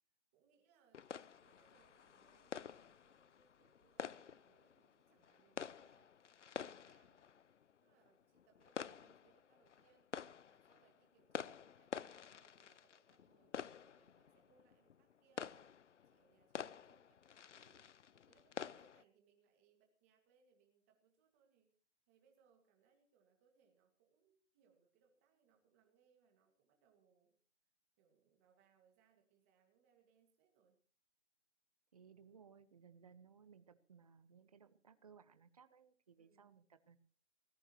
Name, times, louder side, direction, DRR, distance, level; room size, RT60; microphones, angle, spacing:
voice 1, 0.3-6.1 6.6-7.3 7.8-10.2 10.5-17.2 17.5-21.8 22.1-27.4 28.0-30.8 36.2-36.6, right 6 dB, 10° right, 3 dB, 2.1 m, -75 dB
sound 1, 0.9-19.0, left 7 dB, 85° left, 0.8 m, -50 dB
voice 2, 31.9-37.0, right 6 dB, 30° right, 11 dB, 1.3 m, -63 dB
23.0 x 19.0 x 3.1 m, 0.42 s
hypercardioid pair, 180°, 35 cm